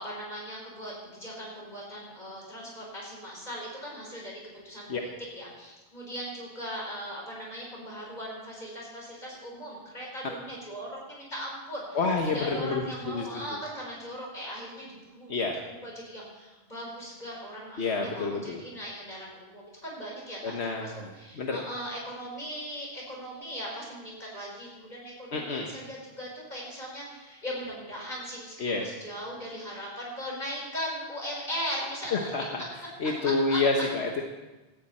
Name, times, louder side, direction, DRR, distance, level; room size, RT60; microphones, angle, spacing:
voice 1, 0.0-4.3 4.6-12.0 12.3-32.3 33.2-33.6, equal, 40° left, -3 dB, 5.6 m, -39 dB
voice 2, 11.9-13.3 15.3-15.6 17.8-18.6 20.4-21.6 25.3-25.7 28.6-28.9 32.1-32.6 33.0-34.2, left 3 dB, 80° left, 2 dB, 1.5 m, -28 dB
17.5 x 14.0 x 4.3 m, 1.1 s
omnidirectional pair, 1.1 m